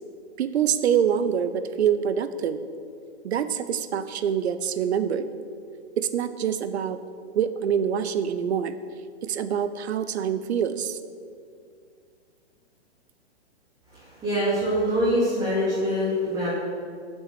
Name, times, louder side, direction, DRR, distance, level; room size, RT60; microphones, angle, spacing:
voice 1, 0.4-2.6 3.2-5.3 6.0-7.0 7.3-8.8 9.2-11.0, right 8 dB, 70° right, 12 dB, 0.7 m, -25 dB
voice 2, 13.9-16.5, equal, 10° right, -11 dB, 2.6 m, -24 dB
7.8 x 6.2 x 6.8 m, 2.2 s
hypercardioid pair, 135°, 34 cm